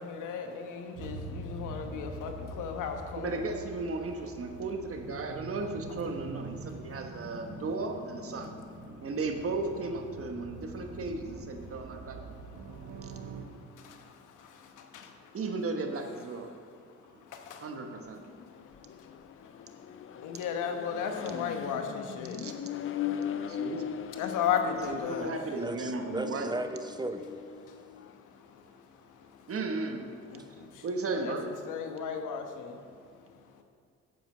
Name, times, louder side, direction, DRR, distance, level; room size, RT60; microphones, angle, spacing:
voice 1, 0.0-2.3 2.6-3.4 20.2-22.4 24.2-25.3 31.2-32.7, left 7 dB, 85° left, 5 dB, 1.2 m, -34 dB
sound 1, 1.0-13.5, right 2 dB, 75° right, 1.3 m, -44 dB
voice 2, 3.2-8.5 9.0-12.3 15.3-16.5 17.6-18.3 22.4-22.5 23.1-23.9 24.9-26.5 29.5-30.0 30.8-31.5, right 3 dB, 50° right, 4 dB, 1.3 m, -35 dB
Accelerating revving vroom, 17.8-28.2, left 9 dB, 45° left, 0.5 m, -39 dB
voice 3, 25.6-27.3, right 1 dB, 15° right, 8 dB, 0.6 m, -35 dB
9.0 x 8.2 x 6.1 m, 2.1 s
cardioid pair, 90°, 30 cm